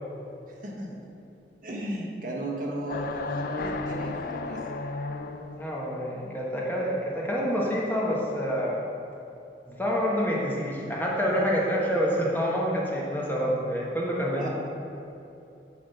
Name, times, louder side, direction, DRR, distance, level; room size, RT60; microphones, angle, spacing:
voice 1, 0.5-1.0 1.6-4.6 14.3-14.5, right 1 dB, 50° right, -2 dB, 1.2 m, -35 dB
sound 1, 2.9-5.7, left 3 dB, 55° left, 0.4 m, -33 dB
voice 2, 5.5-8.8 9.7-14.5, equal, 10° left, -4 dB, 1.1 m, -27 dB
9.1 x 3.8 x 5.4 m, 2.8 s
head